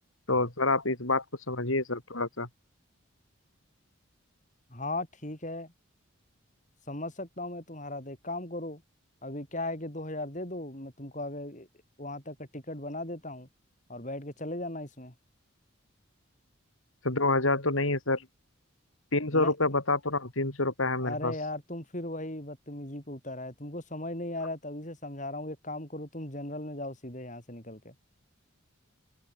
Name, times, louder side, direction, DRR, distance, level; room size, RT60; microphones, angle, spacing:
voice 1, 0.3-2.5 17.0-18.2 19.1-21.3, left 2 dB, 75° left, 4.9 m, -27 dB
voice 2, 4.7-5.7 6.9-8.8 9.2-11.7 12.0-13.5 13.9-15.1 19.3-19.5 21.0-27.9, left 1 dB, 35° left, 5.8 m, -37 dB
head